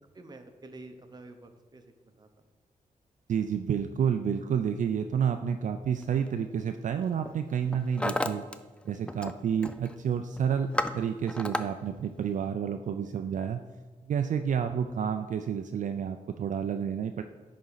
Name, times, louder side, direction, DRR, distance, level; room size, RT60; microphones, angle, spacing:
voice 1, 0.1-2.3 3.3-3.5, right 2 dB, 30° right, 6 dB, 0.8 m, -49 dB
voice 2, 3.3-8.4 8.9-13.6 14.0-17.2, right 7 dB, 65° right, 7 dB, 0.4 m, -30 dB
Hammer, 6.0-6.3 7.0-7.3 7.6-8.6 8.8-9.4 9.6-10.0 10.4-11.7, left 1 dB, 10° left, 0.3 m, -32 dB
10.5 x 4.2 x 4.0 m, 1.3 s
wide cardioid pair, 100°, 14 cm